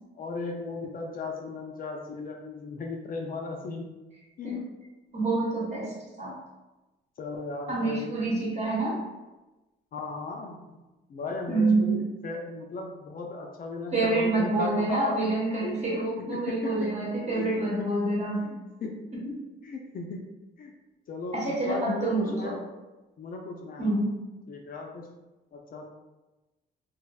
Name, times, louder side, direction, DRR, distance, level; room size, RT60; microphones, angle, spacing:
voice 1, 0.1-3.9 4.4-4.6 7.2-8.2 9.9-10.8 11.1-15.2 15.6-15.9 16.2-16.9 17.3-17.9 18.4-19.0 19.6-20.2 20.6-20.7 21.1-22.6 23.2-24.0 24.5-25.1 25.5-25.9, left 3 dB, 45° left, 1 dB, 0.4 m, -36 dB
voice 2, 5.1-6.3 7.7-9.0 11.5-11.9 13.9-18.5 19.2-19.3 21.3-22.5 23.8-24.1, right 2 dB, 35° right, -5 dB, 1.0 m, -27 dB
2.6 x 2.0 x 2.3 m, 1.1 s
cardioid pair, 90°, 20 cm